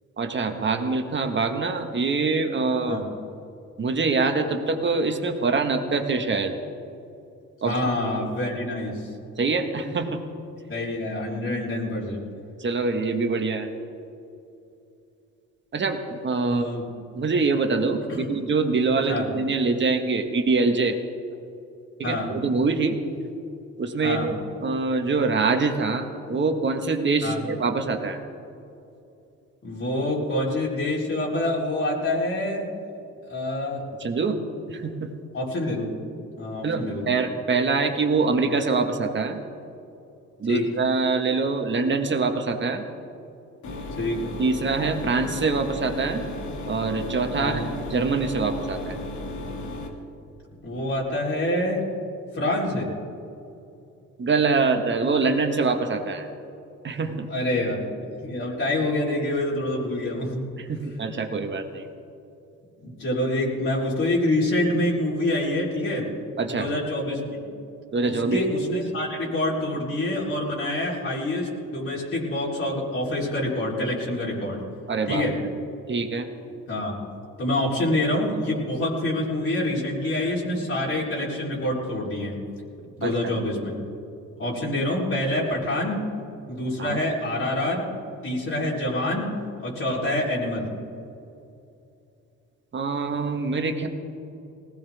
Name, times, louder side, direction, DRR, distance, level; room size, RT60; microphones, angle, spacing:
voice 1, 0.2-3.0 3.8-6.5 7.6-7.8 8.0-8.2 9.4-10.2 12.6-13.7 15.7-16.7 17.1-21.0 22.0-23.0 23.8-24.4 24.6-28.2 34.0-34.4 34.7-35.1 36.6-39.4 40.4-42.8 44.4-46.2 46.7-49.0 54.2-56.3 56.8-57.3 60.6-61.9 66.4-66.7 67.9-68.4 74.9-75.3 75.9-76.3 83.0-83.3 86.8-87.0 92.7-93.9, right 4 dB, 40° right, 5 dB, 1.7 m, -24 dB
voice 2, 7.6-8.9 10.7-12.3 16.5-16.9 18.1-18.3 19.1-19.3 22.0-22.3 24.0-24.3 27.2-27.4 29.6-32.7 33.3-33.9 35.3-35.9 36.4-37.1 40.5-40.7 44.0-44.2 47.4-47.6 50.6-51.9 52.3-52.9 57.3-57.9 58.2-60.5 62.8-66.1 66.5-67.4 68.0-74.6 75.1-75.4 76.7-77.0 77.4-82.3 83.0-83.8 84.4-86.0 86.5-87.8 88.2-89.3 89.6-90.7, left 1 dB, 45° left, -6 dB, 4.1 m, -26 dB
sound 1, 43.6-49.9, left 2 dB, 70° left, 2.4 m, -34 dB
19.5 x 17.0 x 3.6 m, 2.7 s
cardioid pair, 90°, 30 cm